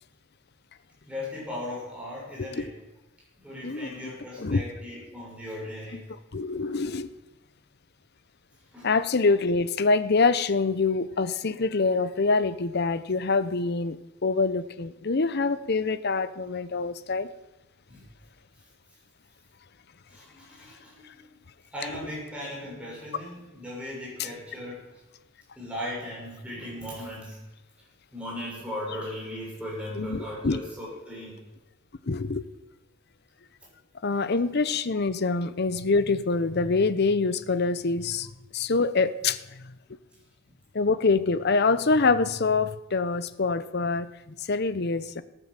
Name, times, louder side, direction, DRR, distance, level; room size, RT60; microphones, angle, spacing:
voice 1, 1.0-2.7 3.4-6.1 8.7-8.9 17.9-18.0 20.1-21.2 21.7-24.9 25.5-27.4 28.1-31.4, left 1 dB, 5° right, -5 dB, 6.5 m, -37 dB
voice 2, 6.3-7.1 8.8-17.3 30.0-30.6 32.1-32.5 34.0-38.3 38.5-39.6 40.7-45.2, left 4 dB, 50° left, 14 dB, 0.7 m, -25 dB
18.5 x 9.1 x 7.5 m, 1.0 s
head